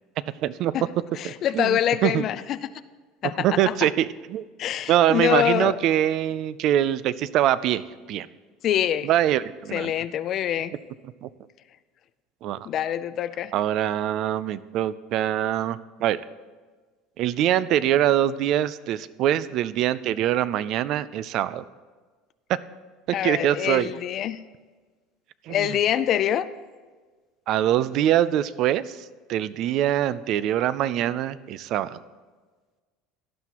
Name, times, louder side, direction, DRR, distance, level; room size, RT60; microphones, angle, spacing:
voice 1, 0.4-0.8 1.2-2.2 3.4-4.4 4.9-7.8 8.1-8.3 9.0-9.9 11.2-11.3 12.4-12.7 13.5-16.2 17.2-21.6 22.5-22.6 23.1-23.9 25.5-25.8 27.5-29.0 29.3-32.0, right 12 dB, 40° right, 17 dB, 0.4 m, -24 dB
voice 2, 1.1-2.7 3.2-3.9 4.6-5.8 8.6-9.1 9.7-10.7 12.7-13.5 23.1-24.4 25.5-26.5, left 11 dB, 35° left, 13 dB, 0.4 m, -25 dB
17.5 x 11.0 x 2.9 m, 1.4 s
cardioid pair, 175°, 0 cm